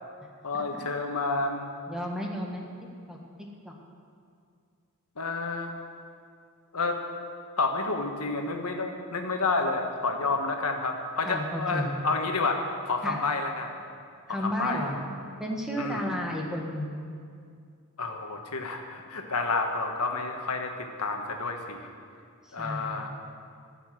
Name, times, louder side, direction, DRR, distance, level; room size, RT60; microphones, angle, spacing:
voice 1, 0.4-1.7 5.2-5.8 6.7-7.0 7.6-13.7 14.4-14.9 15.8-16.1 18.0-21.8 22.5-23.1, left 3 dB, 85° left, 3 dB, 1.5 m, -30 dB
voice 2, 1.9-2.6 3.1-3.2 3.6-3.7 11.2-11.9 13.0-13.2 14.3-15.0 15.4-16.9 22.4-23.1, equal, ahead, -1 dB, 1.6 m, -32 dB
14.5 x 7.0 x 9.5 m, 2.2 s
head